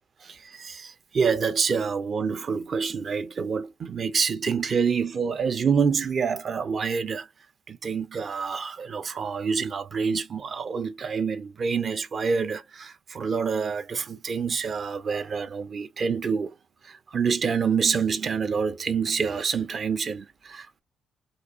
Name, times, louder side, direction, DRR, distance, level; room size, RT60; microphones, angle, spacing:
voice 1, 0.2-7.3 7.7-16.5 16.8-20.8, right 5 dB, 35° right, 0.8 m, -27 dB
4.9 x 2.5 x 2.5 m
cardioid pair, 150°, 0 cm